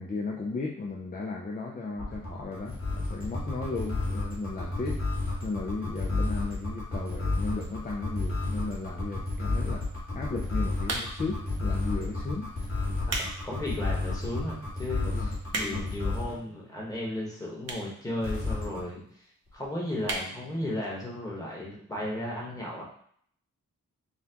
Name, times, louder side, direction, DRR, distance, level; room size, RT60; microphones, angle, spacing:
voice 1, 0.0-5.0 5.4-9.9 10.1-13.0 15.0-15.9, left 3 dB, 25° left, -1 dB, 0.4 m, -35 dB
sound 1, 2.0-16.4 18.2-18.8, left 2 dB, 45° left, 1.7 m, -30 dB
sound 2, 10.8-11.4 12.1-12.3 12.8-13.4 13.8-13.9 14.5-14.6 14.8-14.9 15.1-16.0 16.8-16.9 17.6-18.0 18.3-18.4 18.6-18.7 18.9-19.0 19.3-19.5 20.0-20.3 20.7-20.8 21.0-21.1, right 2 dB, 55° right, 0.7 m, -33 dB
voice 2, 13.2-19.2 19.5-22.8, left 1 dB, 10° left, -4 dB, 1.2 m, -35 dB
5.6 x 2.3 x 2.9 m, 0.63 s
wide cardioid pair, 130°, 32 cm